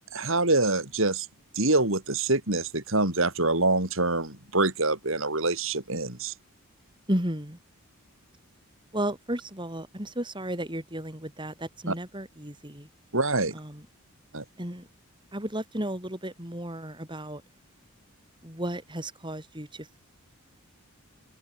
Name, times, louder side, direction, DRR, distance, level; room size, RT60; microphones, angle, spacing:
voice 1, 0.1-1.3 1.6-6.3 11.9-12.0 13.1-13.5 14.3-14.4, right 2 dB, 60° right, 4.4 m, -25 dB
voice 2, 7.1-7.6 8.9-12.9 13.5-13.9 14.6-14.9 15.3-17.4 18.4-20.0, right 1 dB, 20° right, 5.1 m, -33 dB
head